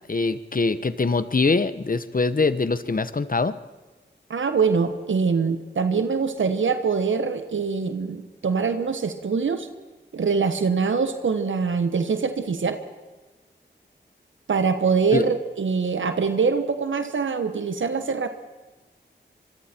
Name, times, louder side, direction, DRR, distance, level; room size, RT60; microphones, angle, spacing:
voice 1, 0.1-3.6 15.1-15.2, left 3 dB, 45° left, 13 dB, 1.1 m, -23 dB
voice 2, 4.3-9.7 10.1-12.8 14.5-18.3, right 5 dB, 85° right, 8 dB, 1.3 m, -24 dB
25.0 x 23.5 x 4.5 m, 1.2 s
cardioid pair, 50°, 19 cm